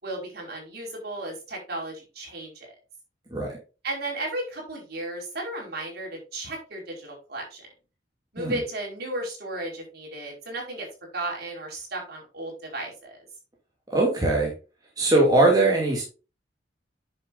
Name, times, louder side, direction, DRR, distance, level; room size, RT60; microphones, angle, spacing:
voice 1, 0.0-2.7 3.8-7.7 8.3-10.9 11.1-13.2, right 2 dB, 60° right, 0 dB, 4.9 m, -34 dB
voice 2, 13.9-14.5 15.0-16.0, right 2 dB, 20° right, -2 dB, 2.5 m, -20 dB
9.8 x 7.0 x 2.6 m, 0.31 s
head